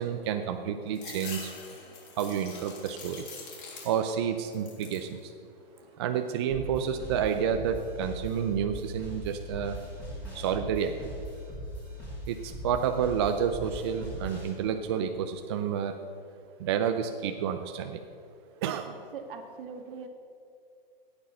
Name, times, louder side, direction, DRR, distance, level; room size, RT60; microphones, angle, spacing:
voice 1, 0.0-1.5 2.2-3.2 3.8-5.3 6.0-9.8 10.3-11.1 12.3-15.9 16.6-17.9 18.6-18.9, right 8 dB, 30° right, 6 dB, 0.4 m, -30 dB
sound 1, 0.9-4.2 4.5-5.1 5.6-6.3, left 4 dB, 55° left, 3.9 m, -45 dB
sound 2, 6.5-14.5, equal, 5° left, 3.6 m, -40 dB
voice 2, 18.9-20.1, right 5 dB, 65° right, 5 dB, 1.8 m, -42 dB
14.5 x 9.0 x 6.8 m, 2.5 s
hypercardioid pair, 165°, 30 cm